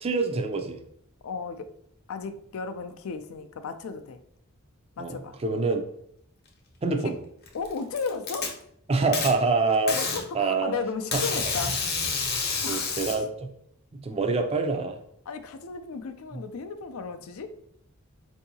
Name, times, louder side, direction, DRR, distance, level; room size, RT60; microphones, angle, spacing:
voice 1, 0.0-0.8 5.0-5.2 5.4-5.8 6.8-7.2 8.9-10.0 10.3-10.7 11.1-11.5 12.7-13.3 14.0-15.0, right 3 dB, 25° right, 5 dB, 0.4 m, -25 dB
voice 2, 1.2-1.7 2.1-4.2 5.0-5.4 7.0-7.1 7.5-8.6 10.0-11.8 12.6-13.2 15.3-17.5, left 5 dB, 75° left, 9 dB, 0.4 m, -34 dB
Packing tape duct tape, 7.5-8.5 9.1-9.3 9.9-10.2 11.1-13.1, left 4 dB, 45° left, 0.7 m, -28 dB
4.5 x 2.7 x 2.7 m, 0.71 s
head